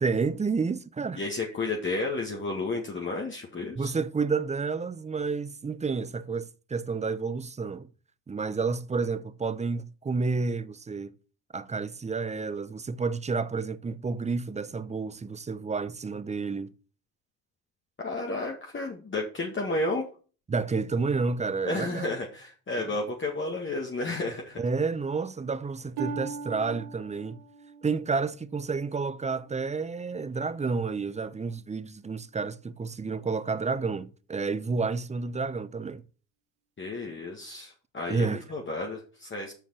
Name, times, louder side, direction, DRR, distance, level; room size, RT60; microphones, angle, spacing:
voice 1, 0.0-1.2 3.8-7.9 8.3-11.1 11.5-16.7 20.5-22.1 22.7-22.9 24.6-27.4 27.8-36.0 37.1-37.2 38.1-38.4, right 4 dB, 15° right, 0.6 m, -30 dB
voice 2, 1.2-3.9 18.0-20.0 21.6-24.6 36.8-39.5, left 2 dB, 25° left, 1.9 m, -32 dB
Harp, 26.0-29.7 30.3-30.7 31.3-31.4, right 5 dB, 65° right, 1.6 m, -40 dB
6.9 x 5.9 x 5.7 m
hypercardioid pair, 70°, 43 cm